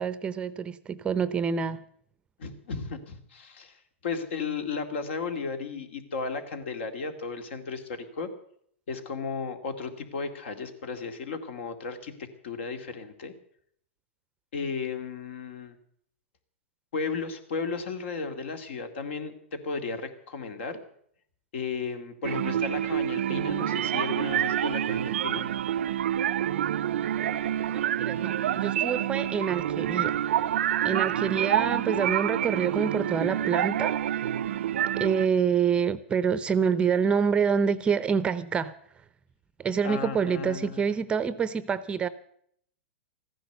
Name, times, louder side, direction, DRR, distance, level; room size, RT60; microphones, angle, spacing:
voice 1, 0.0-1.8 27.7-30.2 30.8-34.3 35.0-38.7 39.6-42.1, right 6 dB, 15° right, 16 dB, 0.6 m, -27 dB
voice 2, 2.4-8.3 8.9-13.3 14.5-15.8 16.9-20.8 21.5-25.5 39.8-40.9, left 5 dB, 70° left, 8 dB, 2.3 m, -34 dB
sound 1, 22.2-35.3, right 11 dB, 75° right, 0.5 m, -27 dB
14.5 x 10.5 x 8.0 m, 0.66 s
hypercardioid pair, 140°, 7 cm